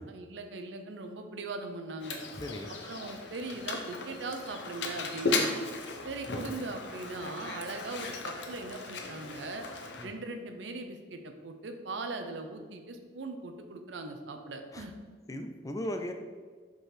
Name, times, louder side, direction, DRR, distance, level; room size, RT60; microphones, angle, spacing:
voice 1, 0.0-2.2 2.8-5.6 6.0-9.6 10.0-14.9, right 3 dB, 80° right, 6 dB, 0.6 m, -40 dB
Mechanisms, 2.0-10.1, left 3 dB, 75° left, 0.7 m, -36 dB
voice 2, 2.4-2.8 6.3-6.4 10.0-10.1 14.7-14.9 15.3-16.1, left 1 dB, 20° left, 6 dB, 0.4 m, -37 dB
5.2 x 3.8 x 4.9 m, 1.5 s
head